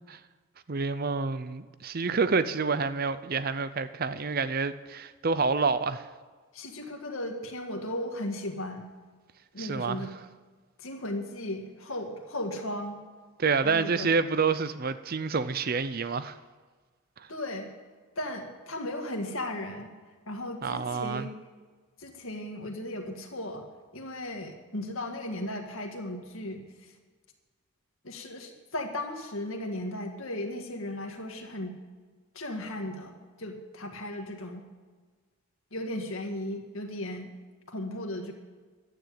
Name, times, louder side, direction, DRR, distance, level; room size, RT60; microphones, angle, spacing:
voice 1, 0.7-6.1 9.6-10.1 13.4-16.4 17.2-17.3 20.6-21.3, right 4 dB, 40° right, 13 dB, 0.6 m, -28 dB
voice 2, 6.5-8.9 9.5-10.1 10.8-13.0 13.6-14.1 17.3-17.7 18.2-19.9 20.3-21.3 22.0-23.7 23.9-26.9 28.0-31.8 32.3-34.7 35.7-37.3 37.7-38.3, left 1 dB, 65° left, 3 dB, 1.9 m, -36 dB
12.5 x 9.4 x 8.8 m, 1.4 s
head